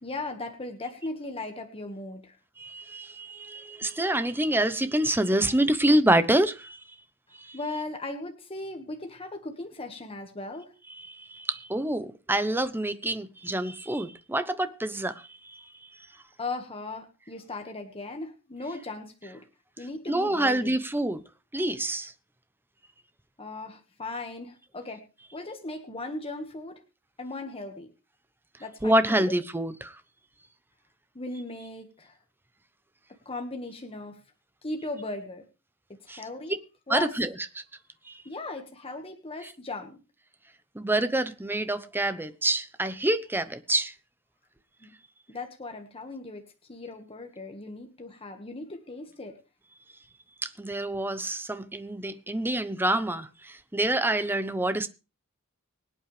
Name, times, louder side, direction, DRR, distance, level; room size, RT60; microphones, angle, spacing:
voice 1, 0.0-2.4 7.5-10.7 16.4-19.4 19.8-20.8 23.4-25.0 25.3-26.8 27.2-27.9 28.6-29.3 31.1-32.2 33.2-34.2 34.6-35.4 35.9-36.6 36.9-37.1 38.2-40.0 44.8-44.9 45.3-49.4, left 2 dB, 25° left, 1.6 m, -37 dB
voice 2, 2.6-6.8 7.4-7.6 10.9-15.6 20.1-21.2 21.5-22.1 28.8-30.0 36.1-36.2 36.9-37.3 37.6-37.7 38.1-38.2 40.7-43.9 50.4-54.9, right 1 dB, 10° right, 0.8 m, -27 dB
24.5 x 8.7 x 3.3 m
head